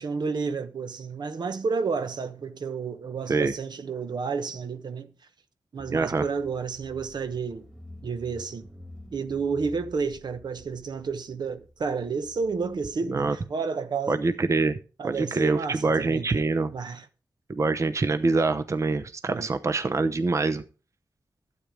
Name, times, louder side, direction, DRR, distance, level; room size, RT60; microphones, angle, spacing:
voice 1, 0.0-5.1 5.7-7.7 8.0-8.7 9.1-14.2 15.0-16.4 16.7-17.1 19.3-19.5, right 5 dB, 70° right, 1.0 m, -31 dB
Car / Engine, 5.8-12.8, left 1 dB, 5° right, 2.2 m, -49 dB
voice 2, 5.9-6.3 13.1-13.4 14.1-14.8 15.0-16.7 17.5-20.6, right 3 dB, 40° right, 0.8 m, -25 dB
12.5 x 8.5 x 5.0 m
wide cardioid pair, 110°, 8 cm